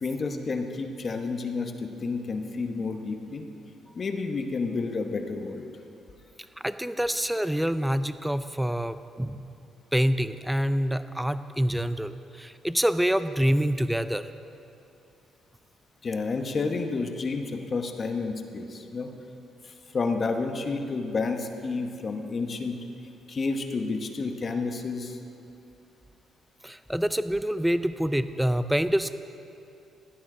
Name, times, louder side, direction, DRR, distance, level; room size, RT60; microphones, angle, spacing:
voice 1, 0.0-3.5 3.9-5.6 16.0-19.1 19.6-22.8 23.3-25.2, left 4 dB, 40° left, 5 dB, 1.0 m, -30 dB
voice 2, 6.6-9.5 9.9-14.3 26.6-29.2, equal, 5° right, 12 dB, 0.4 m, -26 dB
15.5 x 12.0 x 3.8 m, 2.7 s
cardioid pair, 90°, 0 cm